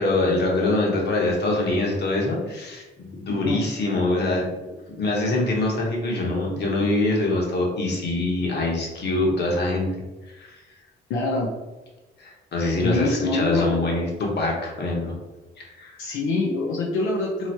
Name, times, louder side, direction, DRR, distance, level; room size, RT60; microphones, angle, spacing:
voice 1, 0.0-4.5 5.0-9.9 10.4-10.6 12.2-15.1 15.6-16.0, left 2 dB, 55° left, -2 dB, 1.1 m, -24 dB
voice 2, 11.1-11.5 12.8-13.8 16.0-17.5, left 3 dB, 90° left, -2 dB, 0.6 m, -24 dB
3.0 x 2.1 x 4.1 m, 1.1 s
cardioid pair, 90°, 20 cm